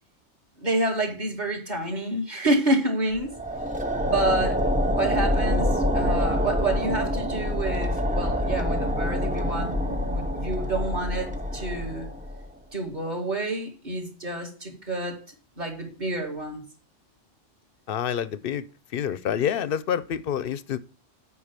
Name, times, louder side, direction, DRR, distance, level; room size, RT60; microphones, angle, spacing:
voice 1, 0.6-3.3 4.0-4.7 4.9-12.1 12.7-15.2 15.6-16.6, right 1 dB, 35° right, 2.4 m, -28 dB
sound 1, 3.1-12.5, equal, 10° right, 0.6 m, -26 dB
voice 2, 17.9-18.6 18.9-20.8, left 9 dB, 55° left, 0.8 m, -27 dB
8.2 x 4.9 x 7.4 m
omnidirectional pair, 1.2 m